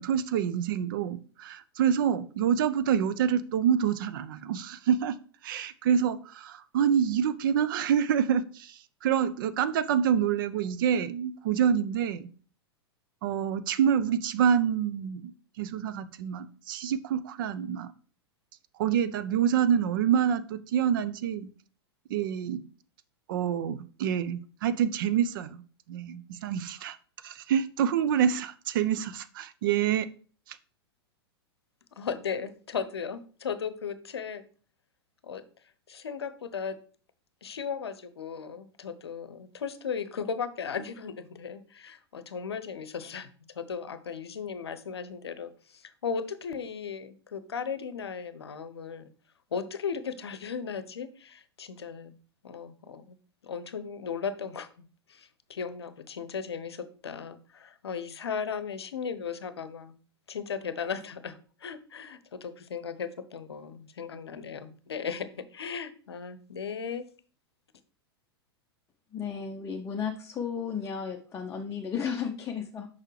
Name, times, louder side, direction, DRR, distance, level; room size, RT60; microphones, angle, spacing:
voice 1, 0.0-5.2 5.4-12.3 13.2-15.3 15.6-17.9 18.8-21.5 22.1-22.6 23.3-25.6 25.9-27.0 27.2-30.1 30.5-30.6, right 8 dB, 55° right, 13 dB, 0.6 m, -27 dB
voice 2, 32.0-34.4 35.2-35.4 35.9-36.8 37.4-49.1 49.5-52.1 52.4-53.1 53.4-60.0 60.3-67.1, left 6 dB, 70° left, 13 dB, 0.7 m, -36 dB
voice 3, 69.1-72.9, left 7 dB, 20° left, 2 dB, 0.7 m, -34 dB
6.5 x 5.5 x 3.2 m, 0.40 s
figure-of-eight pair, 100°, 14 cm